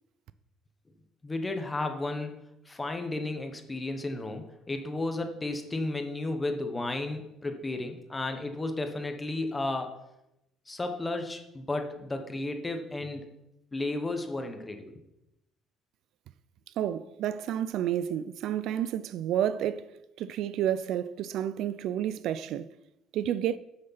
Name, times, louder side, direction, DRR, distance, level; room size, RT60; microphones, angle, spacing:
voice 1, 1.2-2.3 2.7-9.9 10.7-13.3 13.7-14.9, left 2 dB, 10° left, 1.0 m, -33 dB
voice 2, 16.8-22.7 23.1-23.6, right 10 dB, 60° right, 0.4 m, -30 dB
9.4 x 6.4 x 5.7 m
cardioid pair, 170°, 0 cm